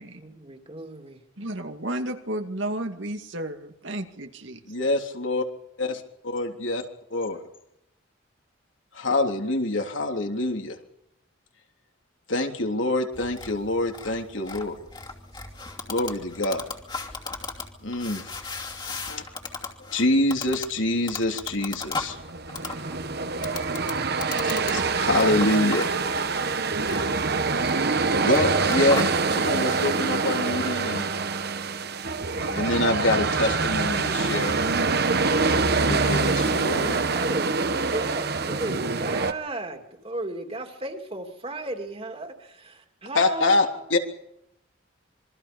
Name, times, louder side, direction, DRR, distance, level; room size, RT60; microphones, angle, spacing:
voice 1, 0.0-1.5 37.1-43.8, right 2 dB, 30° right, 4 dB, 3.0 m, -35 dB
voice 2, 1.4-4.6, right 1 dB, 70° right, 5 dB, 2.3 m, -32 dB
voice 3, 4.7-5.4 5.8-5.9 6.2-6.8 7.1-7.4 8.9-10.8 12.3-14.8 15.9-16.6 17.8-18.3 19.1-19.2 19.9-22.2 24.4-25.9 27.6-28.0 28.2-29.0 29.3-31.1 32.3-34.6 35.5-37.0 43.1-44.0, left 2 dB, 75° left, 3 dB, 3.4 m, -25 dB
sound 1, 13.1-29.1, left 3 dB, 20° left, 2.7 m, -37 dB
sound 2, 22.0-39.3, right 4 dB, 50° right, 1.2 m, -25 dB
27.0 x 23.5 x 5.4 m, 0.79 s
head